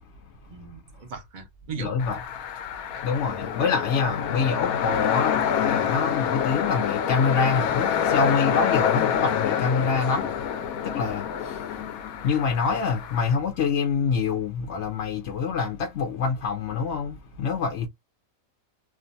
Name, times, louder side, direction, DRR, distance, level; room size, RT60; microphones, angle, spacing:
voice 1, 0.5-2.0, right 6 dB, 45° right, 0.6 m, -38 dB
voice 2, 1.8-2.2 3.0-10.3 10.8-11.8 12.2-17.9, left 5 dB, 65° left, 0.8 m, -26 dB
sound 1, 2.0-13.4, left 8 dB, 85° left, 1.0 m, -27 dB
2.5 x 2.4 x 2.6 m
omnidirectional pair, 1.5 m